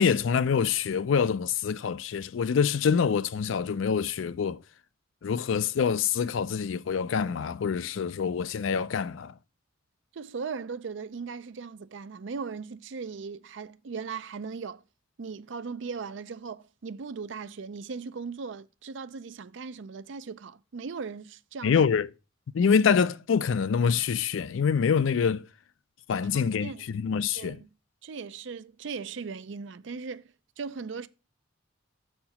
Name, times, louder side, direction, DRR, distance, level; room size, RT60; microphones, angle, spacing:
voice 1, 0.0-4.6 5.2-9.4 21.6-22.1 22.5-25.5 26.1-27.6, left 6 dB, 75° left, 0.4 m, -25 dB
voice 2, 10.1-14.8 15.2-21.8 26.3-27.0 27.4-27.7 28.0-30.3 30.6-31.1, right 5 dB, 65° right, 0.5 m, -38 dB
6.6 x 4.4 x 5.7 m
head